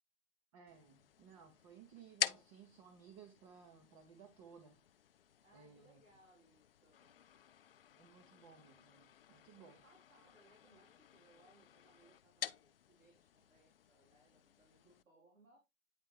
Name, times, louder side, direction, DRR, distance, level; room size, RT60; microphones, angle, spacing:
voice 1, 0.5-4.8 5.5-6.0 8.0-9.8, right 7 dB, 25° right, 0.9 m, -59 dB
sound 1, 0.7-15.0, left 10 dB, 50° left, 0.4 m, -49 dB
voice 2, 5.4-7.2 9.6-15.6, right 1 dB, 80° right, 3.1 m, -68 dB
9.1 x 3.3 x 3.2 m
figure-of-eight pair, 130°, 38 cm